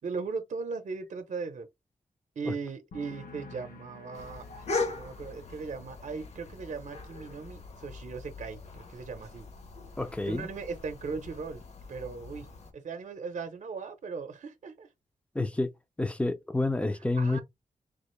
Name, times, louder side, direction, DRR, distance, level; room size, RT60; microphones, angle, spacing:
voice 1, 0.0-1.7 2.4-9.5 10.3-11.6 11.9-12.5 12.7-14.9 17.2-17.4, right 4 dB, 60° right, 0.7 m, -38 dB
sound 1, 2.9-10.4 10.7-11.2, left 4 dB, 80° left, 1.0 m, -54 dB
sound 2, 4.1-12.7, left 3 dB, 50° left, 0.8 m, -40 dB
voice 2, 10.0-10.5 15.3-15.7 16.0-17.4, left 2 dB, 10° left, 0.4 m, -29 dB
3.7 x 2.4 x 3.1 m
wide cardioid pair, 175°, 14 cm